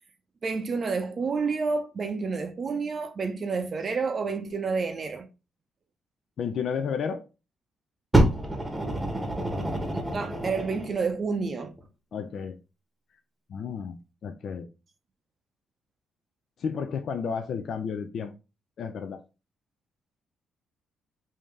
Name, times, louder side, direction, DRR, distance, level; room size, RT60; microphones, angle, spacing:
voice 1, 0.4-5.3 9.9-11.7, right 4 dB, 40° right, 0.5 m, -29 dB
voice 2, 6.4-7.2 12.1-12.6 13.5-14.0 14.2-14.7 16.6-18.3 18.8-19.2, left 6 dB, 60° left, 0.4 m, -32 dB
Fire, 8.1-11.0 11.8-11.9, right 1 dB, 10° right, 0.9 m, -26 dB
3.6 x 2.7 x 3.1 m
cardioid pair, 90°, 0 cm